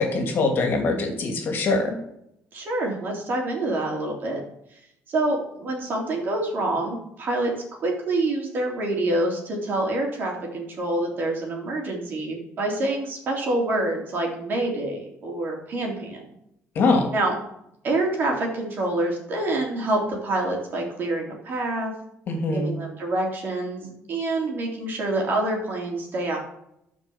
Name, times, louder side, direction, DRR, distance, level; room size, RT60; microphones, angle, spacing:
voice 1, 0.0-2.0 16.7-17.1 22.3-22.7, left 3 dB, 45° left, 2 dB, 2.6 m, -23 dB
voice 2, 2.5-4.4 4.7-4.8 5.1-7.5 7.8-16.2 17.1-17.3 17.8-21.9 22.5-26.4, right 2 dB, 45° right, 0 dB, 3.4 m, -26 dB
12.0 x 5.4 x 7.1 m, 0.78 s
cardioid pair, 155°, 5 cm